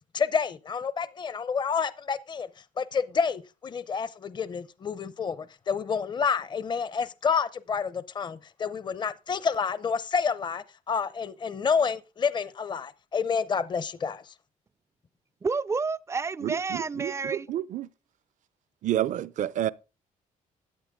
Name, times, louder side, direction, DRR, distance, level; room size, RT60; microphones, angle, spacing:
voice 1, 0.1-2.5 2.8-14.3, left 6 dB, 35° left, 0.7 m, -29 dB
voice 2, 15.4-17.5, right 4 dB, 20° right, 0.5 m, -30 dB
voice 3, 16.4-17.9 18.8-19.7, right 12 dB, 65° right, 0.6 m, -29 dB
13.5 x 8.8 x 3.6 m
cardioid pair, 130°, 14 cm